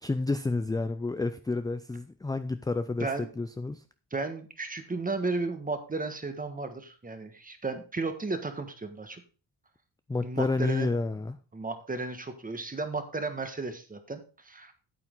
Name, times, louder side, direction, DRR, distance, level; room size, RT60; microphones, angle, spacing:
voice 1, 0.0-3.1 3.4-3.8 10.1-11.4, left 3 dB, 10° left, 11 dB, 0.3 m, -30 dB
voice 2, 4.1-9.2 10.2-10.9 11.5-14.7, right 3 dB, 20° right, 8 dB, 1.5 m, -34 dB
9.0 x 8.7 x 3.8 m, 0.36 s
wide cardioid pair, 140°, 40 cm